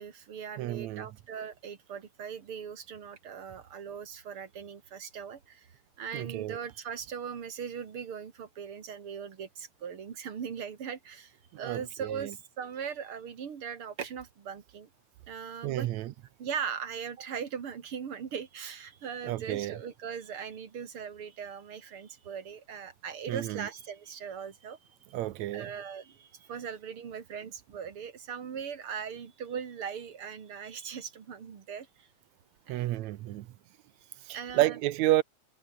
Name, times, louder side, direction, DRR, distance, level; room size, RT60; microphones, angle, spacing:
voice 1, 0.0-5.7 6.0-14.9 15.3-15.9 16.4-24.8 25.5-32.1 32.7-33.0 34.3-34.8, right 7 dB, 50° right, 2.8 m, -39 dB
voice 2, 0.6-1.1 6.1-6.6 11.5-11.8 12.2-12.3 15.6-16.1 19.2-19.8 23.3-23.7 25.1-25.7 32.7-33.5 34.3-35.2, right 15 dB, 75° right, 2.1 m, -30 dB
omnidirectional pair, 3.3 m